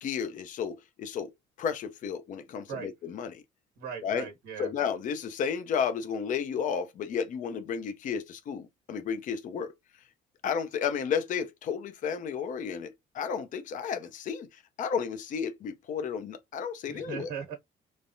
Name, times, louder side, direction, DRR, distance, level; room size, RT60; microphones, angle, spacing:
voice 1, 0.0-1.3 1.6-3.4 4.0-4.3 4.6-9.7 10.4-17.3, left 7 dB, 50° left, 0.6 m, -32 dB
voice 2, 3.8-4.7 16.9-17.5, right 6 dB, 90° right, 1.2 m, -38 dB
3.2 x 2.1 x 2.6 m
cardioid pair, 110°, 17 cm